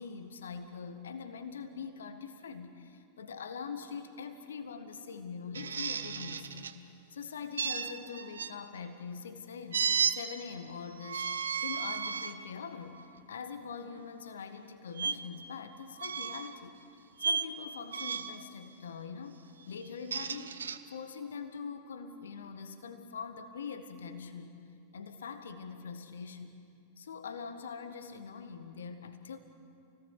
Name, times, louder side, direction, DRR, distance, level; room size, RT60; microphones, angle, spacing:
voice 1, 0.0-6.7 7.1-11.3 11.6-13.0 13.3-16.8 17.2-20.6 20.9-24.7 24.9-26.6 27.0-29.4, left 6 dB, 65° left, 9 dB, 1.6 m, -43 dB
sound 1, 5.5-6.7 7.6-8.5 9.7-10.2 11.0-12.3 13.0-13.2 15.0-15.1 16.0-16.5 17.2-17.5 17.9-18.4 19.8-20.8, right 6 dB, 70° right, 1.0 m, -33 dB
28.5 x 18.5 x 8.4 m, 2.5 s
figure-of-eight pair, 90°, 0 cm